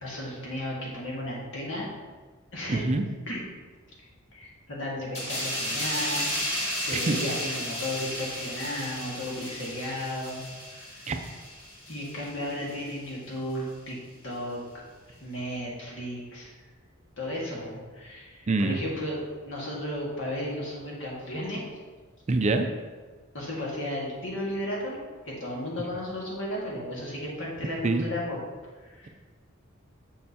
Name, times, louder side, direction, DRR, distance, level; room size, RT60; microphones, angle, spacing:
voice 1, 0.0-1.9 2.5-2.8 3.3-3.4 4.3-10.4 10.7-11.1 11.9-14.6 15.2-16.5 17.2-21.6 23.3-25.0 25.2-28.4 28.8-29.1, left 1 dB, 70° left, -4 dB, 1.8 m, -34 dB
voice 2, 2.7-3.0 6.9-7.2 11.1-11.2 18.5-18.8 22.3-22.7 27.8-28.1, right 3 dB, 35° right, 6 dB, 0.4 m, -25 dB
sound 1, 5.1-12.3 12.7-12.9, equal, 35° left, 1.6 m, -33 dB
6.5 x 6.4 x 2.8 m, 1.4 s
head